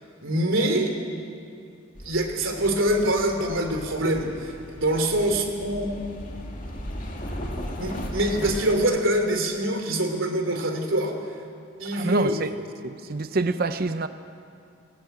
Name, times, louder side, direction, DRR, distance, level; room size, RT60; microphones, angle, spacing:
voice 1, 0.2-0.9 2.0-5.9 7.8-11.1 11.8-12.4, right 1 dB, 75° right, 3 dB, 3.1 m, -24 dB
sound 1, 1.9-8.6, equal, 40° left, 2.3 m, -36 dB
voice 2, 11.9-12.5 12.8-14.1, right 3 dB, 45° right, 11 dB, 0.6 m, -26 dB
19.0 x 16.5 x 9.1 m, 2.6 s
head